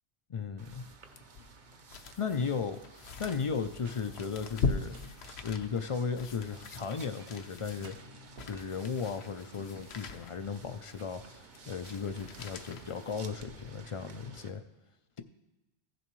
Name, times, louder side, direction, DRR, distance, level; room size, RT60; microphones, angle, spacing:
voice 1, 0.3-0.9 2.2-2.8 3.2-5.0 5.3-7.9 8.4-14.6, left 5 dB, 55° left, 8 dB, 0.3 m, -35 dB
sound 1, 0.6-14.5, right 3 dB, 50° right, 0.8 m, -54 dB
sound 2, 1.2-13.8 14.3-14.4, left 4 dB, 75° left, 0.9 m, -41 dB
sound 3, 3.2-5.7 6.4-7.3 7.7-9.0 9.5-11.7 12.0-13.1 13.5-13.9, right 3 dB, 70° right, 1.1 m, -58 dB
16.0 x 7.0 x 3.1 m, 1.0 s
omnidirectional pair, 1.1 m